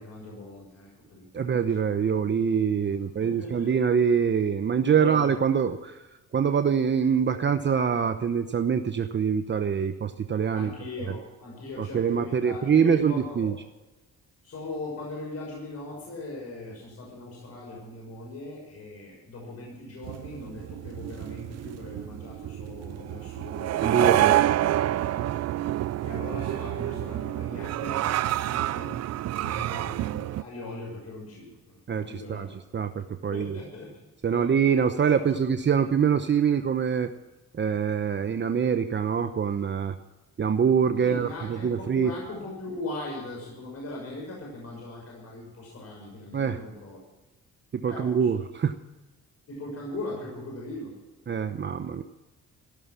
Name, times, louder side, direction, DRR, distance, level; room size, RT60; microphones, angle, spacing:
voice 1, 0.0-1.6 3.2-3.7 5.0-5.3 10.5-13.5 14.4-24.4 24.8-25.3 26.0-31.6 31.9-32.5 33.3-34.0 34.3-34.5 35.3-35.4 41.0-47.0 47.9-48.3 49.5-51.0, left 2 dB, 55° left, -2 dB, 6.1 m, -39 dB
voice 2, 1.3-6.1 6.3-10.7 11.8-13.5 23.8-24.4 31.9-32.5 32.7-33.6 34.2-37.1 37.5-39.9 40.4-42.1 46.3-46.6 47.7-48.8 51.3-52.0, right 7 dB, 40° right, 9 dB, 0.9 m, -24 dB
sound 1, 20.0-30.4, right 13 dB, 60° right, 0.5 m, -28 dB
15.0 x 12.5 x 6.0 m, 1.1 s
cardioid pair, 90°, 30 cm